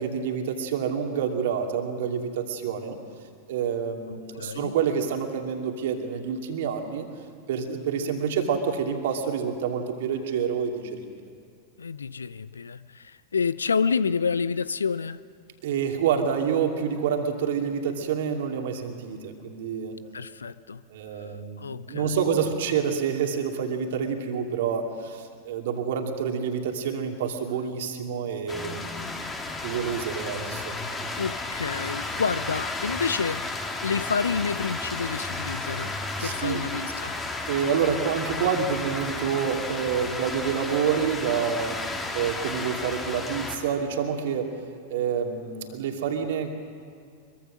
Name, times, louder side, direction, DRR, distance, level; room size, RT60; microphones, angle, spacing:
voice 1, 0.0-3.0 3.5-7.1 7.5-11.1 15.6-20.0 20.9-29.0 29.6-31.0 36.2-36.6 37.5-41.8 42.1-44.5 44.9-46.5, right 7 dB, 55° right, 3 dB, 2.6 m, -28 dB
voice 2, 4.1-4.7 11.8-15.2 20.1-20.8 21.2-21.3 21.6-22.2 31.2-33.4 33.8-37.2, left 5 dB, 70° left, 17 dB, 0.5 m, -29 dB
sound 1, 28.5-43.6, left 2 dB, 15° left, 2.5 m, -33 dB
24.0 x 23.0 x 6.3 m, 2.3 s
figure-of-eight pair, 90°, 0 cm